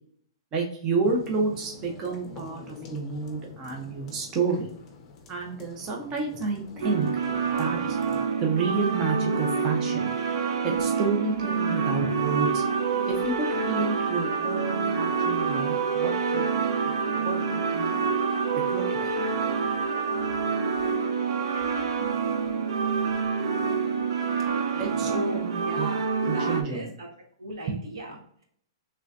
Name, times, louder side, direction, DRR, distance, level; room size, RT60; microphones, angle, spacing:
voice 1, 0.5-4.7 5.3-7.1 7.6-8.0 8.4-10.1 10.6-12.6 13.1-16.5 16.8-16.9 17.2-18.0 18.5-19.1 24.8-25.9 26.3-26.9 27.7-27.8, right 4 dB, 20° right, 0 dB, 0.6 m, -30 dB
sound 1, 1.0-8.3, left 4 dB, 20° left, 0.6 m, -46 dB
sound 2, 6.8-26.6, right 5 dB, 60° right, 0.6 m, -27 dB
voice 2, 24.4-27.1 27.4-28.4, equal, 80° right, 0 dB, 1.4 m, -38 dB
3.6 x 3.2 x 2.6 m, 0.63 s
hypercardioid pair, 170°, 3 cm